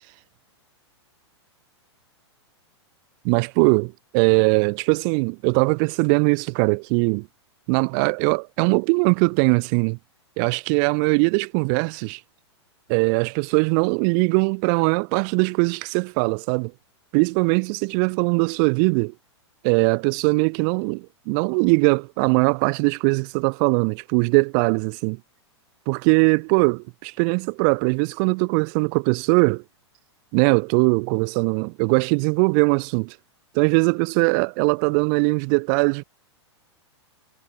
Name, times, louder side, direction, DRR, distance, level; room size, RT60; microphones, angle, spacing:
voice 1, 3.2-7.3 7.7-10.0 10.4-12.2 12.9-16.7 17.1-19.1 19.6-25.2 25.9-29.6 30.3-33.1 33.5-36.0, right 40 dB or more, 45° right, 0.9 m, -21 dB
hypercardioid pair, 120°, 15 cm